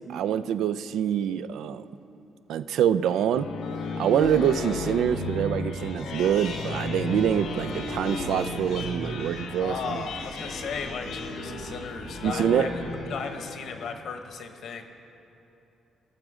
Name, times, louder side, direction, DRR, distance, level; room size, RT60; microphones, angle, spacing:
voice 1, 0.1-1.8 2.5-3.5 4.0-10.0 12.2-12.7, right 9 dB, 80° right, 13 dB, 0.3 m, -25 dB
sound 1, 3.1-13.9, left 3 dB, 85° left, 1.2 m, -34 dB
sound 2, 4.5-13.2, right 2 dB, 30° right, 1.2 m, -44 dB
voice 2, 9.6-14.8, left 5 dB, 65° left, 6 dB, 1.0 m, -36 dB
19.0 x 6.4 x 4.9 m, 2.9 s
cardioid pair, 90°, 0 cm